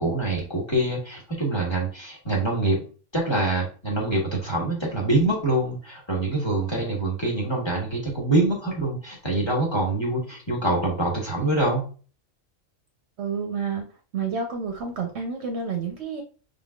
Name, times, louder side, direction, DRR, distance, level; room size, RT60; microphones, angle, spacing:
voice 1, 0.0-2.8 3.1-11.8, right 2 dB, 20° left, -2 dB, 1.3 m, -25 dB
voice 2, 13.2-13.9 14.1-16.2, right 5 dB, 60° right, 4 dB, 0.9 m, -29 dB
5.3 x 3.6 x 2.3 m, 0.38 s
omnidirectional pair, 1.4 m